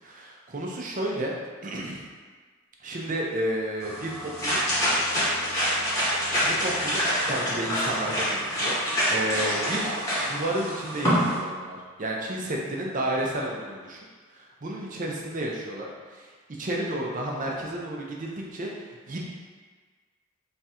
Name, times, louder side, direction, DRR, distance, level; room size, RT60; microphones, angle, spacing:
voice 1, 0.0-1.3 1.6-2.0 2.8-5.0 6.4-7.0 7.3-8.8 9.1-9.9 10.2-14.0 14.4-16.3 16.6-18.7 19.1-19.2, right 1 dB, 35° right, -1 dB, 0.5 m, -31 dB
sound 1, 3.8-11.4, equal, 15° left, 0.9 m, -26 dB
3.3 x 2.4 x 4.2 m, 1.5 s
head